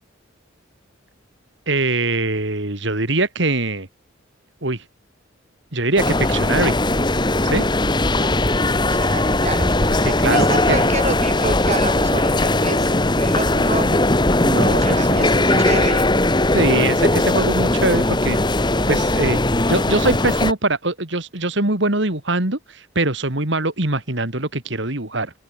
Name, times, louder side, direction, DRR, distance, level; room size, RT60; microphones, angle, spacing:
voice 1, 1.7-3.9 4.6-4.8 5.7-6.8 7.4-7.7 10.0-10.9 14.4-15.8 16.5-18.4 18.9-19.4 19.7-25.3, right 2 dB, 60° right, 2.7 m, -22 dB
sound 1, 6.0-20.5, left 2 dB, 20° left, 1.7 m, -19 dB
voice 2, 8.1-8.6 8.9-9.7 10.3-12.9 13.2-14.0 14.8-16.1, right 2 dB, 35° right, 4.1 m, -28 dB
open air
head